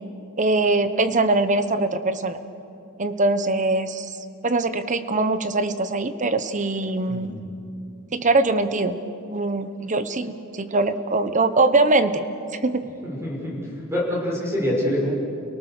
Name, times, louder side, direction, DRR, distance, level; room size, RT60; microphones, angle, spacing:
voice 1, 0.4-2.4 3.0-4.1 4.4-7.3 8.1-9.0 9.3-12.2 12.5-12.9, right 2 dB, 35° right, 11 dB, 1.1 m, -22 dB
voice 2, 7.1-7.5 13.0-13.6 13.9-15.1, left 1 dB, 15° right, -3 dB, 6.2 m, -25 dB
30.0 x 18.5 x 6.7 m, 2.6 s
head